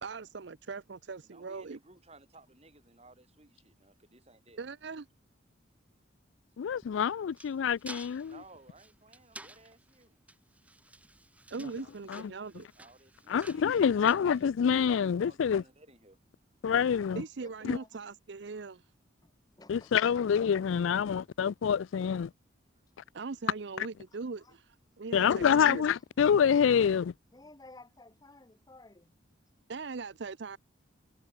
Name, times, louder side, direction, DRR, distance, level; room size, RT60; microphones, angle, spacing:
voice 1, 0.0-1.8 4.6-5.1 11.5-12.7 17.2-18.8 23.1-25.8 29.7-30.6, right 4 dB, 60° right, 0.6 m, -40 dB
voice 2, 1.2-4.6 8.3-10.2 11.8-11.9 12.8-14.2 14.4-16.2, right 2 dB, 30° right, 5.5 m, -58 dB
voice 3, 6.6-8.3 12.1-12.3 13.3-15.6 16.6-17.2 17.6-17.8 19.7-22.3 23.8-23.9 25.1-27.1, left 7 dB, 75° left, 0.4 m, -26 dB
sound 1, 6.8-15.0, right 2 dB, 5° right, 1.1 m, -52 dB
voice 4, 17.1-18.1 18.5-18.6 19.6-20.1 24.4-24.5 27.3-29.2, left 2 dB, 20° left, 0.8 m, -55 dB
head